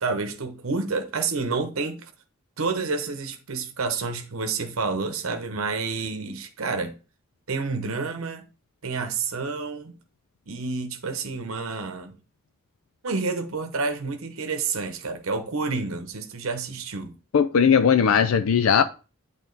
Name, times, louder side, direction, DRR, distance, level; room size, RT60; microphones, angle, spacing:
voice 1, 0.0-2.1 2.6-7.0 7.5-8.4 8.8-9.9 10.5-12.1 13.0-17.2, right 4 dB, 80° right, 0.9 m, -29 dB
voice 2, 17.3-18.8, left 7 dB, 75° left, 0.4 m, -18 dB
8.6 x 3.7 x 3.9 m
head